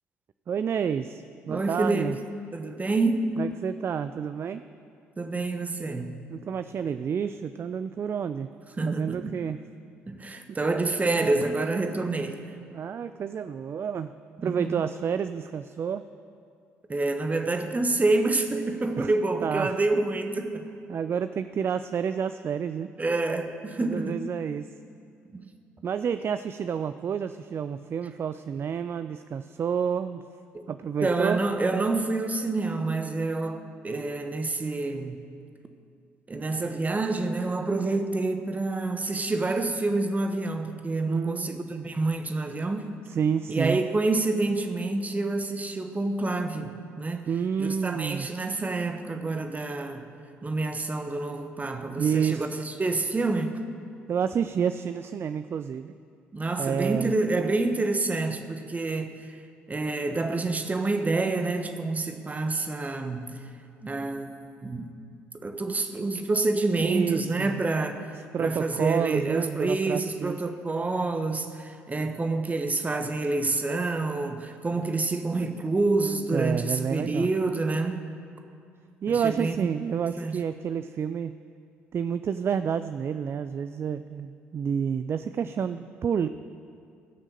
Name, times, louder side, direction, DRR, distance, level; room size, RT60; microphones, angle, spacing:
voice 1, 0.5-2.2 3.4-4.6 6.3-8.5 8.8-9.6 12.7-14.1 14.4-16.0 19.0-19.1 19.4-19.8 20.9-22.9 23.8-24.7 25.8-30.2 30.7-31.4 41.1-41.9 43.1-43.8 47.3-48.3 52.0-52.5 54.1-55.9 56.6-57.1 66.8-67.7 68.1-70.4 76.3-77.3 79.0-81.3 81.9-86.3, right 7 dB, 40° right, 12 dB, 0.4 m, -29 dB
voice 2, 1.5-2.2 2.5-3.4 5.2-6.1 8.8-9.4 10.1-12.4 14.4-14.8 16.9-20.8 23.0-24.2 25.3-25.5 30.5-30.7 31.0-35.2 36.3-43.0 43.5-47.3 47.6-50.1 50.4-53.6 56.3-59.4 59.7-63.4 63.8-64.3 64.6-64.9 65.4-68.1 68.4-78.1 79.1-79.7 80.2-80.4, right 3 dB, 25° right, 7 dB, 1.1 m, -28 dB
16.0 x 6.3 x 6.6 m, 2.4 s
hypercardioid pair, 50°, 6 cm